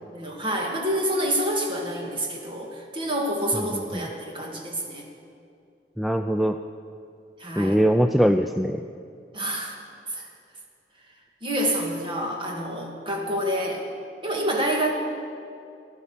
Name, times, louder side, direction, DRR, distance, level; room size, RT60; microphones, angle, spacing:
voice 1, 0.1-5.0 7.4-7.8 9.3-9.7 10.1-10.3 11.4-13.9 14.2-14.9, right 1 dB, 30° right, 0 dB, 2.1 m, -27 dB
voice 2, 6.0-6.6 7.6-8.8, equal, ahead, 7 dB, 0.3 m, -21 dB
15.5 x 11.0 x 7.3 m, 2.5 s
head